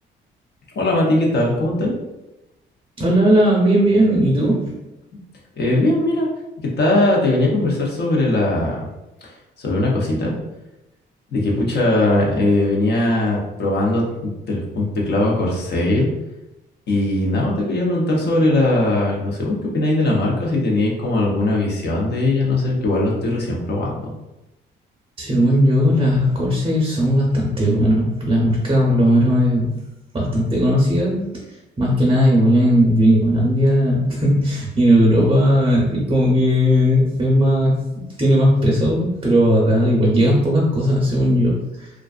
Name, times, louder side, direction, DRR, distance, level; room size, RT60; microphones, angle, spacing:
voice 1, 0.8-1.9 5.6-6.3 6.8-8.9 9.6-10.3 11.3-16.1 16.9-24.1, left 2 dB, 55° left, -2 dB, 0.7 m, -20 dB
voice 2, 3.0-4.7 25.2-29.7 30.1-31.4 31.8-41.9, equal, 25° right, -3 dB, 0.6 m, -17 dB
2.4 x 2.3 x 2.3 m, 0.97 s
cardioid pair, 90°, 20 cm